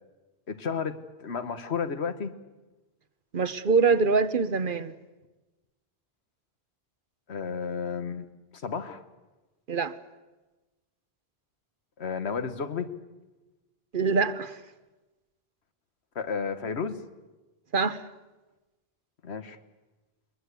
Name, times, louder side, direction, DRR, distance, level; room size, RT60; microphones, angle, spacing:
voice 1, 0.5-2.3 7.3-8.2 8.5-9.0 12.0-12.9 16.1-17.0 19.2-19.6, left 6 dB, 85° left, 10 dB, 1.6 m, -32 dB
voice 2, 3.3-4.9 9.7-9.9 13.9-14.6 17.7-18.0, right 4 dB, 55° right, 13 dB, 1.1 m, -24 dB
22.5 x 20.5 x 8.3 m, 1.1 s
omnidirectional pair, 1.1 m